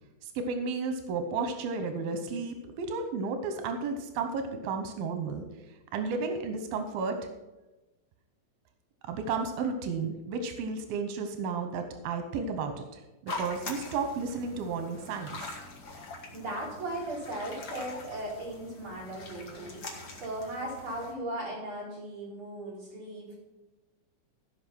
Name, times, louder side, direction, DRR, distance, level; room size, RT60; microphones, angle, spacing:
voice 1, 0.2-5.5 5.9-7.2 9.0-15.5, right 4 dB, 90° right, 7 dB, 2.7 m, -33 dB
sound 1, 13.3-21.1, left 3 dB, 50° left, 1.3 m, -43 dB
voice 2, 16.3-23.3, right 1 dB, 35° right, -6 dB, 5.3 m, -37 dB
15.0 x 5.5 x 6.1 m, 1.1 s
omnidirectional pair, 4.0 m